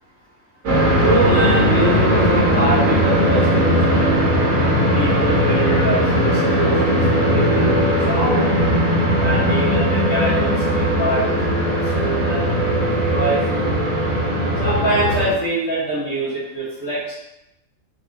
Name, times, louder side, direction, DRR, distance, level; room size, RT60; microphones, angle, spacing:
sound 1, 0.6-15.3, equal, 85° right, 1.4 m, -18 dB
voice 1, 1.0-4.1 4.9-8.6 9.2-11.4 11.6-13.7 14.6-17.1, right 1 dB, 70° left, -15 dB, 2.2 m, -24 dB
4.5 x 2.9 x 3.1 m, 0.83 s
omnidirectional pair, 1.4 m